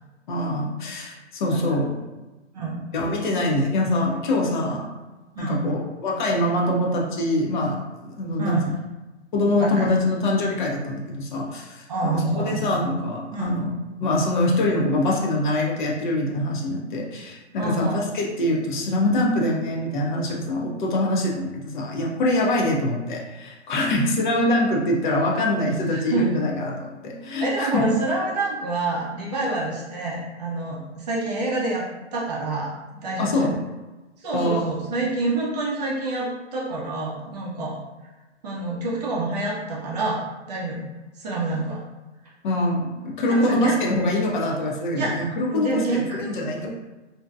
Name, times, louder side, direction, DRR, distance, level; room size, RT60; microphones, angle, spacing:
voice 1, 0.3-1.9 2.9-4.9 5.4-8.6 9.3-28.0 33.2-33.6 34.3-34.7 42.4-46.7, left 1 dB, 45° left, -1 dB, 0.5 m, -24 dB
voice 2, 8.4-8.7 9.6-9.9 11.9-12.7 13.3-13.5 17.6-18.0 25.9-26.3 27.4-31.8 32.1-32.7 33.0-33.3 34.2-37.8 38.4-40.9 41.2-41.8 43.1-43.8 44.9-45.2 45.5-46.7, right 2 dB, 35° right, -4 dB, 0.5 m, -27 dB
2.6 x 2.1 x 2.3 m, 1.1 s
hypercardioid pair, 150°, 35 cm